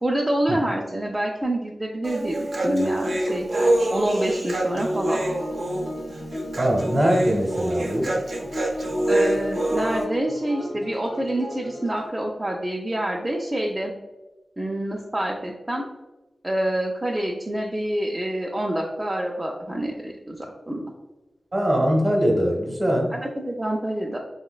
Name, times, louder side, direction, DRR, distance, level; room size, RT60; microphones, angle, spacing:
voice 1, 0.0-3.5 3.9-5.2 9.1-13.9 14.6-15.8 16.4-20.8 23.1-24.2, right 1 dB, 20° right, -1 dB, 0.3 m, -27 dB
Human voice, 2.0-10.0, right 1 dB, 75° right, 0.5 m, -25 dB
sound 1, 4.7-12.1, equal, 60° left, 0.6 m, -35 dB
voice 2, 6.6-8.1 21.5-23.1, equal, 40° right, 0 dB, 0.7 m, -22 dB
3.1 x 2.0 x 2.2 m, 1.1 s
wide cardioid pair, 70°, 0 cm